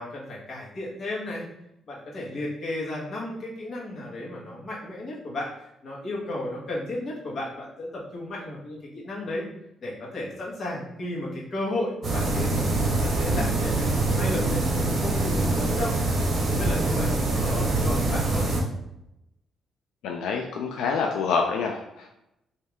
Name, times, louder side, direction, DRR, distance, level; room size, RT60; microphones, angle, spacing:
voice 1, 0.0-1.4 1.9-5.5 5.8-9.4 9.8-15.9 16.5-18.5, left 1 dB, 45° left, -5 dB, 1.2 m, -34 dB
sound 1, 12.0-18.6, right 2 dB, 50° right, 0.9 m, -24 dB
voice 2, 20.0-22.1, left 5 dB, 90° left, 1 dB, 0.3 m, -27 dB
3.1 x 2.7 x 3.5 m, 0.84 s
cardioid pair, 110°, 0 cm